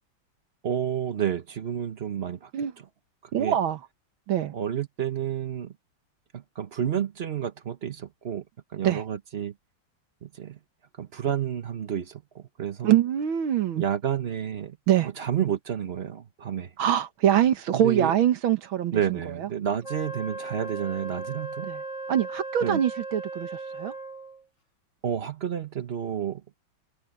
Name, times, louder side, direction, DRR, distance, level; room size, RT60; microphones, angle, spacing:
voice 1, 0.6-2.5 3.3-3.6 4.5-5.7 6.3-8.4 8.7-9.5 10.2-10.6 11.0-12.9 13.8-14.8 15.0-16.7 17.7-18.1 18.9-21.7 22.6-22.8 25.0-26.4, right 9 dB, 50° right, 0.8 m, -30 dB
voice 2, 3.3-3.8 4.3-4.5 8.8-9.0 12.8-13.8 14.9-15.1 16.8-19.5 21.7-21.8 22.1-23.9, right 10 dB, 85° right, 2.1 m, -24 dB
Wind instrument woodwind instrument, 19.8-24.4, right 3 dB, 35° left, 5.2 m, -37 dB
omnidirectional pair, 2.2 m